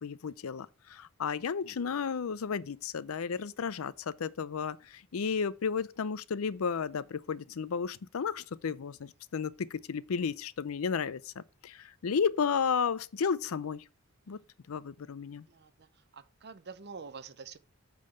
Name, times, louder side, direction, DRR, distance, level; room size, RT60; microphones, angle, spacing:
voice 1, 0.0-13.8 14.3-14.4 14.7-15.4, left 6 dB, 80° left, 0.5 m, -33 dB
voice 2, 15.5-15.9 16.1-17.6, right 5 dB, 50° right, 0.7 m, -46 dB
8.4 x 3.8 x 6.5 m
head